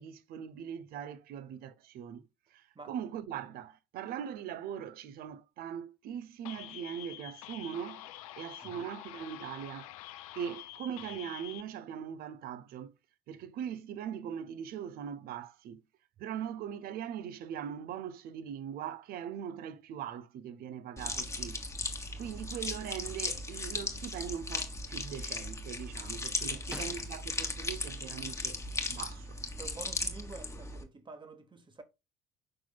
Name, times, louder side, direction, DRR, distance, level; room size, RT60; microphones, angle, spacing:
voice 1, 0.0-2.2 2.5-8.1 8.4-9.9 10.3-12.9 13.3-15.8 16.2-21.6 22.2-28.6 28.9-29.4, right 9 dB, 50° right, 0.8 m, -41 dB
sound 1, 6.4-11.6, left 14 dB, 65° left, 0.5 m, -47 dB
sound 2, 21.0-30.8, left 2 dB, 15° left, 1.5 m, -37 dB
voice 2, 26.5-26.9 29.5-31.8, right 3 dB, 25° right, 1.5 m, -49 dB
sound 3, 26.7-29.5, right 1 dB, 5° right, 0.9 m, -51 dB
7.6 x 5.9 x 2.3 m
figure-of-eight pair, 55°, 20 cm